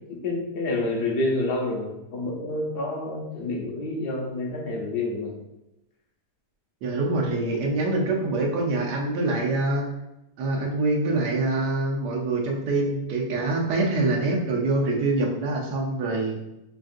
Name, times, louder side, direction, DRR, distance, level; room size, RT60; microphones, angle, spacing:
voice 1, 0.1-5.3, left 2 dB, 50° left, -1 dB, 0.7 m, -28 dB
voice 2, 6.8-9.9 10.4-16.4, right 2 dB, 90° right, -1 dB, 1.4 m, -25 dB
5.5 x 2.4 x 2.5 m, 0.92 s
omnidirectional pair, 1.7 m